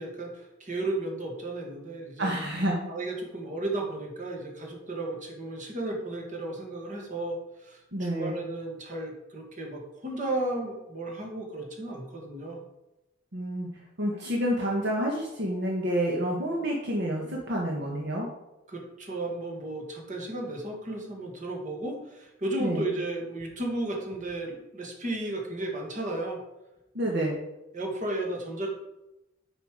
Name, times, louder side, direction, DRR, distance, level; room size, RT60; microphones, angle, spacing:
voice 1, 0.0-2.3 2.9-12.6 18.7-26.4 27.1-27.2 27.7-28.7, right 2 dB, 40° right, 0 dB, 1.9 m, -34 dB
voice 2, 2.2-2.9 7.9-8.4 13.3-13.7 14.0-18.3 22.6-22.9 26.9-27.4, equal, 60° right, -1 dB, 1.3 m, -28 dB
8.3 x 5.6 x 5.0 m, 0.94 s
head